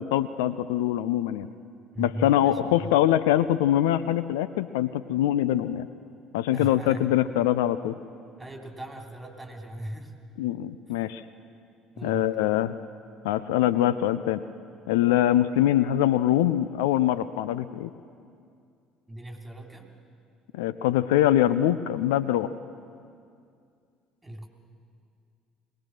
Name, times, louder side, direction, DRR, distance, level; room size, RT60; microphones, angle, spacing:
voice 1, 0.0-1.5 2.0-5.9 6.3-7.9 10.4-11.2 12.0-12.7 13.2-14.4 14.9-17.9 20.5-22.5, left 12 dB, 70° left, 14 dB, 0.5 m, -23 dB
voice 2, 1.9-2.9 6.5-7.1 8.4-10.2 11.9-12.3 19.1-19.9 24.2-24.5, right 1 dB, 10° right, 2 dB, 3.2 m, -38 dB
21.5 x 19.5 x 6.5 m, 2.3 s
figure-of-eight pair, 55°, 0 cm